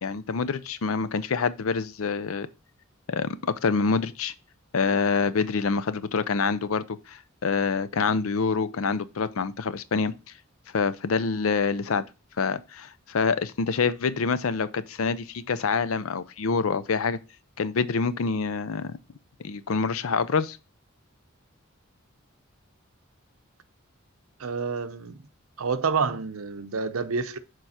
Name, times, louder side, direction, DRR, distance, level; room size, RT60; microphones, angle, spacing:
voice 1, 0.0-2.5 3.1-4.3 4.7-10.1 10.7-12.0 12.4-17.2 17.6-19.0 19.4-20.6, left 5 dB, 80° left, 0.6 m, -26 dB
voice 2, 24.4-25.2 25.6-27.4, right 5 dB, 85° right, 0.7 m, -28 dB
6.8 x 4.6 x 4.2 m
head